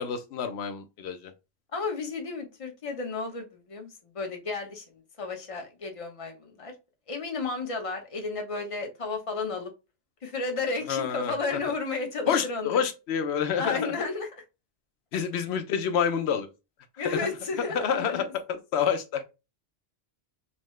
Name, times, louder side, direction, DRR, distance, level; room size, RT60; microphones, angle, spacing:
voice 1, 0.0-1.3 10.9-11.3 12.3-13.8 15.1-16.5 17.0-17.2 17.6-19.3, left 7 dB, 85° left, 0.9 m, -28 dB
voice 2, 1.7-6.7 7.1-9.7 10.2-12.9 13.6-14.4 15.1-15.2 17.0-18.3, left 4 dB, 35° left, 0.9 m, -33 dB
5.5 x 2.1 x 3.1 m
omnidirectional pair, 1.1 m